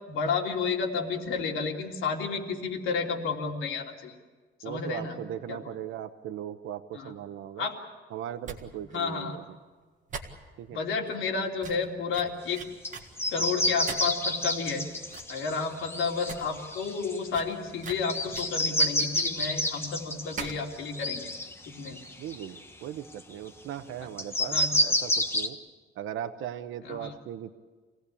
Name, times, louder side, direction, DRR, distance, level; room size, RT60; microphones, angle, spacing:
voice 1, 0.1-4.2 4.6-5.2 5.5-5.6 6.9-7.1 7.6-7.7 8.9-9.4 10.7-12.6 13.3-14.8 15.3-21.2 21.7-22.0 24.4-24.7 26.8-27.1, left 5 dB, 80° left, 0 dB, 3.2 m, -31 dB
voice 2, 4.6-7.7 8.1-9.4 10.6-10.8 22.2-25.6 26.0-27.6, right 10 dB, 90° right, 9 dB, 0.9 m, -38 dB
sound 1, 8.4-8.6 8.9-9.0 9.3-9.4 10.1-10.7 11.1-11.2 11.6-11.9 12.1-13.1 13.9-14.2 14.7-14.8 15.1-15.4 15.7-15.8 16.1-16.4 16.7-16.8 17.3-19.5 20.4-20.7 20.9-21.0, right 6 dB, 40° right, 1.8 m, -40 dB
sound 2, 12.8-12.9 13.2-17.4 18.0-22.6 23.1-23.2 24.2-25.5, left 1 dB, 10° left, 1.2 m, -29 dB
26.0 x 17.5 x 8.5 m, 1.4 s
cardioid pair, 175°, 20 cm